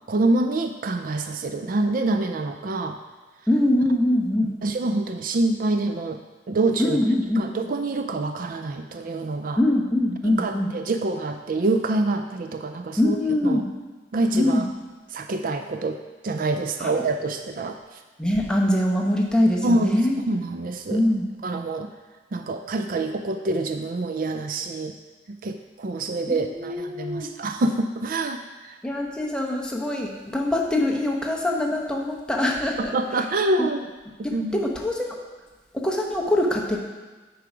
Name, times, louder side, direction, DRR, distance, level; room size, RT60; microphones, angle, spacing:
voice 1, 0.1-3.0 4.6-6.2 6.5-7.0 7.4-9.6 10.2-13.2 13.4-13.6 14.1-14.6 15.1-17.8 19.6-20.0 20.3-21.0 21.4-21.9 22.3-24.9 25.3-28.4 32.8-33.9 34.3-34.6, right 2 dB, 55° right, 7 dB, 0.4 m, -26 dB
voice 2, 3.5-4.5 6.8-7.5 9.6-10.7 13.0-13.7 14.3-14.7 16.8-16.9 18.2-20.2 20.9-21.3 26.3-27.3 28.8-33.3 33.6-33.7 34.2-35.2 35.7-36.8, left 1 dB, 5° left, -1 dB, 1.0 m, -23 dB
8.4 x 4.7 x 5.0 m, 1.3 s
head